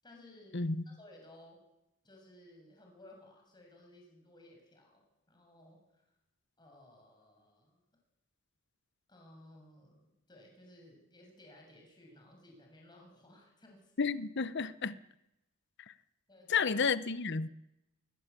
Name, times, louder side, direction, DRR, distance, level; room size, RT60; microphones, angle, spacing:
voice 1, 0.0-1.6 2.0-6.0 6.6-7.8 9.1-13.9 16.3-16.7, left 1 dB, 20° left, 7.0 m, -58 dB
voice 2, 14.0-15.0 16.5-17.5, left 5 dB, 55° left, 0.9 m, -31 dB
21.5 x 20.5 x 8.4 m
head